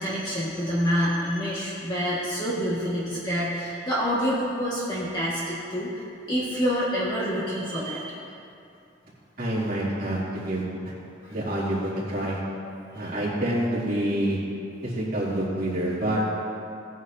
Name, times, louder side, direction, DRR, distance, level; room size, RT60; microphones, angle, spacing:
voice 1, 0.0-5.9 6.3-8.1, equal, 25° left, -8 dB, 1.6 m, -27 dB
voice 2, 9.4-10.9 11.3-12.4 12.9-14.4 14.8-16.2, right 1 dB, 50° right, -8 dB, 2.8 m, -27 dB
17.5 x 9.3 x 2.7 m, 2.6 s
head